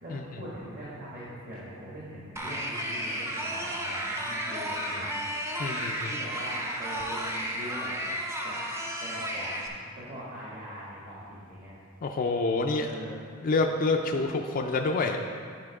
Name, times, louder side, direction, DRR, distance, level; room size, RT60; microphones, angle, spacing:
voice 1, 0.0-5.1 6.1-7.9 8.4-8.5 9.0-11.8 12.8-13.2 13.9-14.2, equal, 45° right, -8 dB, 1.6 m, -42 dB
sound 1, 2.4-9.7, equal, 15° right, 0.7 m, -33 dB
voice 2, 5.6-6.1 12.0-12.9 13.4-14.3 14.5-15.2, left 3 dB, 40° left, 2 dB, 0.4 m, -27 dB
9.8 x 4.4 x 4.7 m, 2.2 s
head